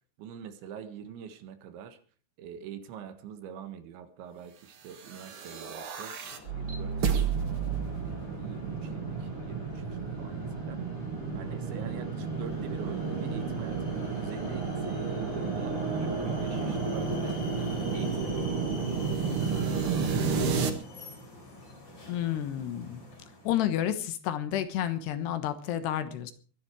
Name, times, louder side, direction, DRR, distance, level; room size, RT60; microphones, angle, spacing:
voice 1, 0.2-2.0 2.4-6.2 6.5-7.1 7.9-10.8 11.3-17.4 17.9-20.0, right 8 dB, 85° right, 9 dB, 3.9 m, -45 dB
sound 1, 4.9-20.7, right 5 dB, 65° right, 1.3 m, -32 dB
sound 2, 6.2-23.7, left 2 dB, 25° left, 4.7 m, -42 dB
voice 2, 22.1-23.0 23.4-26.3, left 11 dB, 75° left, 11 dB, 3.2 m, -30 dB
23.5 x 10.5 x 4.7 m, 0.40 s
omnidirectional pair, 5.1 m